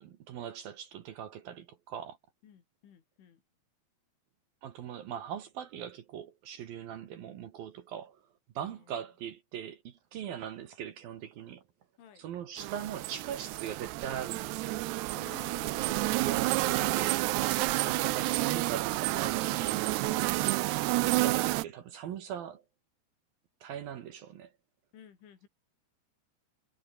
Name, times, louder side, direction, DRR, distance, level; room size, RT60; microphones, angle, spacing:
voice 1, 0.0-2.2 4.6-8.2 8.6-11.6 12.2-14.8 15.8-17.2 17.7-20.4 21.1-22.6 23.6-24.5, right 9 dB, 65° right, 2.8 m, -40 dB
voice 2, 2.4-3.4 8.6-9.1 12.0-12.3 15.1-15.9 17.5-17.8 20.0-20.3 24.9-25.5, left 8 dB, 80° left, 5.9 m, -55 dB
sound 1, 12.6-21.6, right 19 dB, 80° right, 2.5 m, -30 dB
omnidirectional pair, 5.4 m